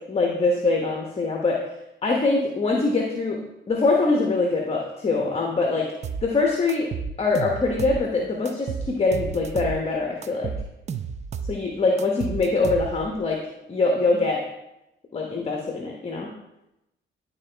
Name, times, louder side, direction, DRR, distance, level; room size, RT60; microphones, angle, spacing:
voice 1, 0.1-1.6 2.0-5.9 6.2-6.9 7.2-10.5 11.5-13.4 13.7-14.4 15.1-16.3, left 3 dB, 30° left, 1 dB, 1.0 m, -23 dB
sound 1, 6.0-6.3 6.7-8.0 8.4-9.8 10.2-11.6 12.0-13.2, right 6 dB, 35° right, 0.5 m, -32 dB
11.0 x 3.9 x 3.4 m, 0.91 s
cardioid pair, 90°, 20 cm